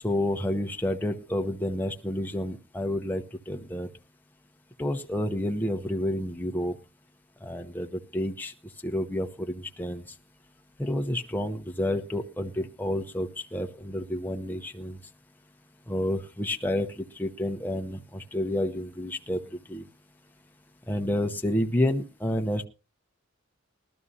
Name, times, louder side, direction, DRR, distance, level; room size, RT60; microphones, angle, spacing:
voice 1, 0.0-3.9 4.8-6.7 7.4-8.5 8.8-10.0 10.8-15.0 15.9-19.4 19.7-19.8 20.9-22.7, left 1 dB, 10° left, 4 dB, 0.8 m, -29 dB
20.5 x 12.5 x 2.7 m, 0.31 s
head